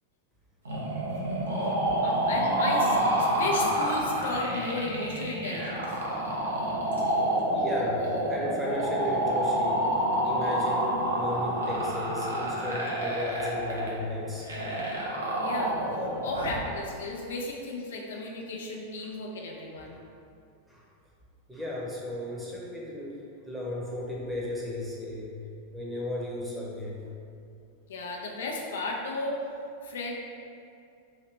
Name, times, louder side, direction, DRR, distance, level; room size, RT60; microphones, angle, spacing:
sound 1, 0.7-16.6, right 1 dB, 70° right, 0.7 m, -28 dB
voice 1, 2.0-5.9 15.4-15.8 16.2-20.0 27.9-29.4 29.8-30.1, left 2 dB, 60° left, -1 dB, 0.4 m, -34 dB
voice 2, 6.0-6.4 7.5-9.9 10.2-14.5 14.8-14.9 16.1-16.2 18.1-18.2 19.0-19.1 19.9-20.0 20.7-20.9 21.5-25.4 25.7-27.1, left 1 dB, 5° right, -6 dB, 0.9 m, -35 dB
3.2 x 2.8 x 4.3 m, 2.5 s
figure-of-eight pair, 90°, 0 cm